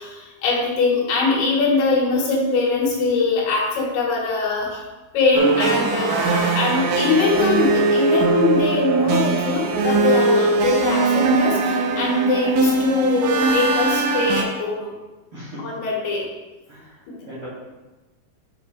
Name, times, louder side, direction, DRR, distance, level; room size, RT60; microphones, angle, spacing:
voice 1, 0.0-4.8 5.1-14.9 15.6-16.3 17.1-17.2, left 3 dB, 75° left, -4 dB, 3.6 m, -22 dB
sound 1, 5.3-14.4, right 3 dB, 85° right, 1.8 m, -20 dB
voice 2, 15.3-15.7 16.7-17.5, equal, 40° right, -11 dB, 2.3 m, -38 dB
7.0 x 6.5 x 3.2 m, 1.2 s
omnidirectional pair, 4.7 m